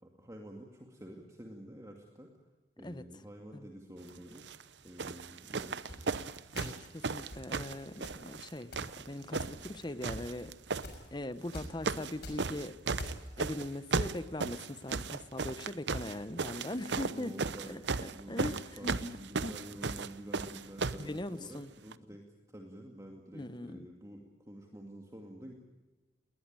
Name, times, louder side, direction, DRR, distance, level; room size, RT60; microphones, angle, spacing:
voice 1, 0.0-2.3 2.8-4.5 4.8-6.1 17.1-25.5, right 1 dB, 15° right, 1 dB, 2.3 m, -49 dB
sound 1, 4.3-4.6 5.0-8.5 8.7-9.7 10.0-10.9 11.5-12.1 12.4-21.1 21.9-22.0, right 4 dB, 75° right, 0.8 m, -35 dB
sound 2, 5.9-6.0 6.5-6.9 7.3-7.5 8.0-8.2 8.7-8.9 9.3-9.7 10.1-10.2 10.8-11.1 11.5-11.7 12.1-12.5 13.0-13.3, left 1 dB, 60° left, 6.2 m, -44 dB
voice 2, 6.6-10.5 11.1-12.8 13.4-17.3 17.7-19.1 19.4-19.6 21.0-21.7 23.3-23.9, left 1 dB, 25° left, 13 dB, 1.0 m, -41 dB
20.5 x 20.0 x 9.0 m, 1.2 s
head